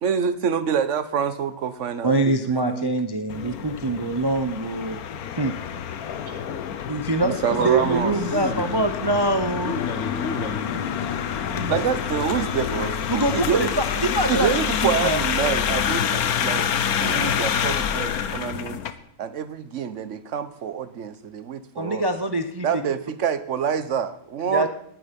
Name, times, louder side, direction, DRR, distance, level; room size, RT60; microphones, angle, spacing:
voice 1, 0.0-2.9 7.2-8.1 11.7-13.7 14.3-18.8 19.2-22.0 22.6-24.7, right 7 dB, 55° right, 13 dB, 1.2 m, -26 dB
voice 2, 2.0-5.0 5.4-5.5 6.9-9.8 10.8-10.9 11.5-11.8 13.1-15.3 21.8-22.8 24.5-24.7, right 2 dB, 25° right, 7 dB, 0.6 m, -24 dB
sound 1, 3.3-18.9, left 8 dB, 80° left, 1.4 m, -27 dB
voice 3, 7.5-8.0 8.3-8.9 9.6-10.8, left 3 dB, 55° left, 5 dB, 1.6 m, -31 dB
18.5 x 9.9 x 5.3 m, 0.71 s
omnidirectional pair, 1.6 m